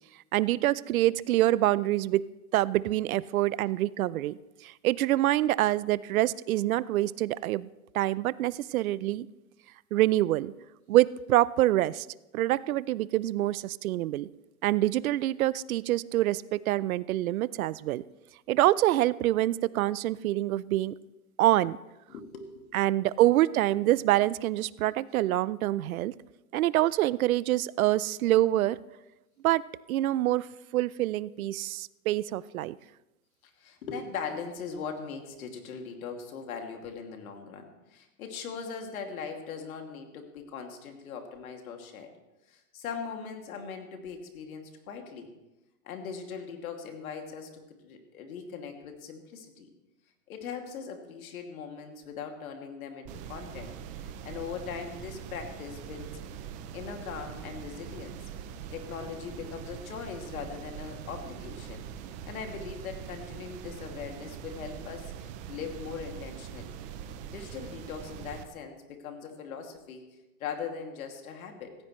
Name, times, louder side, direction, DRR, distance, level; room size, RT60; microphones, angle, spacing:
voice 1, 0.3-2.2 2.5-7.7 7.9-9.3 9.9-10.5 10.9-12.1 12.3-14.3 14.6-18.0 18.5-20.9 21.4-21.8 22.7-26.2 26.5-28.8 29.4-29.6 29.9-32.8, right 15 dB, 70° right, 20 dB, 0.6 m, -26 dB
voice 2, 22.1-22.8 33.6-42.1 42.5-45.3 45.8-49.7 50.3-56.5 56.7-58.2 58.7-61.8 62.2-66.8 67.3-70.1 70.4-71.8, left 6 dB, 70° left, 4 dB, 2.5 m, -40 dB
sound 1, 53.1-68.4, right 8 dB, 20° right, 0.5 m, -43 dB
17.5 x 15.0 x 3.2 m, 1.0 s
hypercardioid pair, 140°, 44 cm